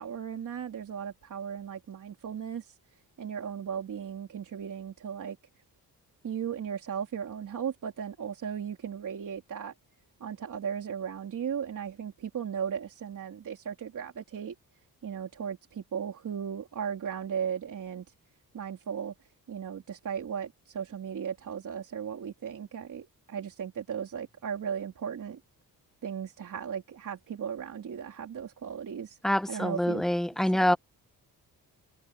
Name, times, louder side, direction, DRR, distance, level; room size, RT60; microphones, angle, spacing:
voice 1, 0.0-2.7 3.2-5.4 6.2-9.7 10.2-14.5 15.0-18.1 18.5-19.1 19.5-25.4 26.0-29.2 29.5-30.0, right 8 dB, 55° right, 3.6 m, -36 dB
voice 2, 29.2-30.8, left 1 dB, ahead, 0.9 m, -26 dB
wide cardioid pair, 175°, 37 cm